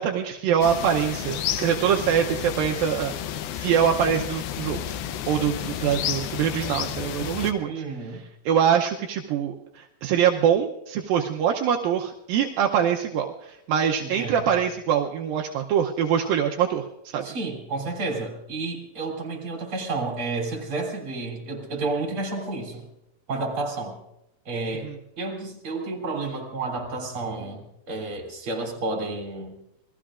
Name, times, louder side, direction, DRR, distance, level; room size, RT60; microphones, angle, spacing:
voice 1, 0.0-4.8 5.3-17.2 24.8-25.0, right 8 dB, 80° right, 1 dB, 2.5 m, -24 dB
sound 1, 0.6-7.5, left 10 dB, 85° left, 2.7 m, -31 dB
voice 2, 7.7-8.2 14.0-14.5 17.2-22.9 23.3-23.9 24.5-29.6, right 3 dB, 35° right, 2 dB, 3.8 m, -31 dB
28.0 x 20.0 x 2.5 m, 0.86 s
omnidirectional pair, 4.2 m